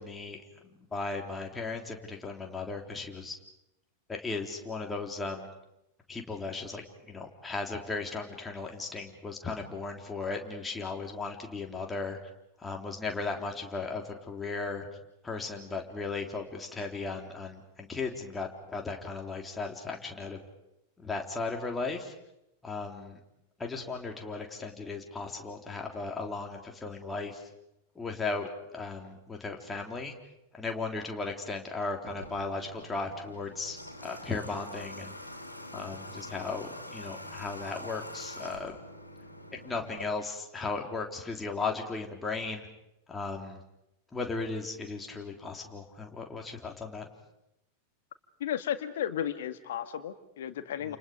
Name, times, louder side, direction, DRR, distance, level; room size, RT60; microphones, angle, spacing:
voice 1, 0.0-3.4 4.1-5.5 6.1-12.2 12.6-14.9 15.2-20.4 21.0-22.1 22.6-23.2 23.6-27.5 28.0-30.1 30.5-35.1 35.7-38.8 39.5-42.7 43.1-43.6 44.1-47.1 50.8-51.0, left 3 dB, 15° left, 2 dB, 3.7 m, -36 dB
Water / Water tap faucet, 32.1-40.1, left 1 dB, 85° left, 3.1 m, -45 dB
voice 2, 48.4-51.0, left 10 dB, 60° left, 10 dB, 1.8 m, -34 dB
29.5 x 29.0 x 5.3 m, 0.86 s
figure-of-eight pair, 90°, 0 cm